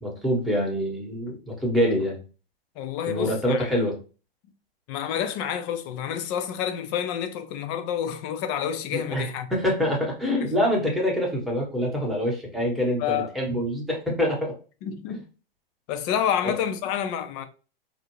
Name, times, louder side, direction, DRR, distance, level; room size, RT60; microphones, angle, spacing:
voice 1, 0.0-2.2 3.1-4.0 8.9-9.3 9.5-14.5 16.4-16.5, equal, ahead, 0.9 m, -25 dB
voice 2, 2.8-3.7 4.9-9.5 10.4-10.5 13.0-13.3 14.8-15.2 15.9-17.5, left 9 dB, 35° left, 0.4 m, -29 dB
2.5 x 2.1 x 2.9 m
hypercardioid pair, 115°, 30 cm